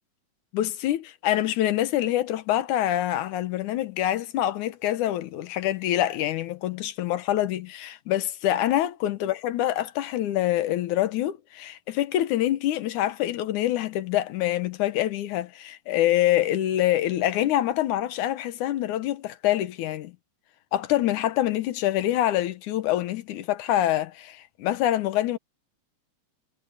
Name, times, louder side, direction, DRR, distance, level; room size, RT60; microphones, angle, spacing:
voice 1, 0.5-20.1 20.7-25.4, left 13 dB, 75° left, 2.4 m, -25 dB
omnidirectional pair, 3.6 m